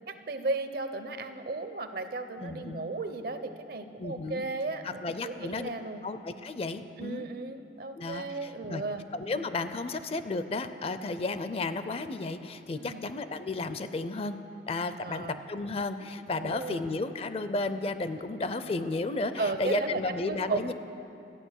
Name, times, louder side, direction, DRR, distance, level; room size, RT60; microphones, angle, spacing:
voice 1, 0.1-6.0 7.0-9.0 12.8-13.0 15.0-15.4 16.4-16.8 19.4-20.0 20.3-20.7, right 3 dB, 55° right, 9 dB, 0.7 m, -35 dB
voice 2, 2.4-2.9 4.0-4.4 4.8-5.7 6.0-7.2 8.0-8.8 9.1-14.4 14.7-20.7, left 3 dB, 35° left, 11 dB, 0.4 m, -33 dB
13.0 x 9.4 x 6.4 m, 2.7 s
head